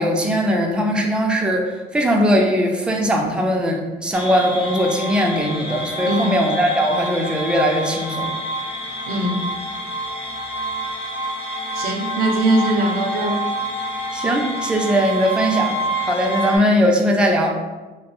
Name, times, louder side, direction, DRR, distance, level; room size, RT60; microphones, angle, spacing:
voice 1, 0.0-8.3 14.1-17.5, equal, 5° right, 1 dB, 0.3 m, -20 dB
sound 1, 4.1-16.6, right 1 dB, 35° left, 0.6 m, -27 dB
voice 2, 6.1-6.4 9.1-9.4 11.7-13.4, right 1 dB, 65° right, 3 dB, 0.4 m, -21 dB
2.2 x 2.0 x 3.0 m, 1.2 s
cardioid pair, 110°, 17 cm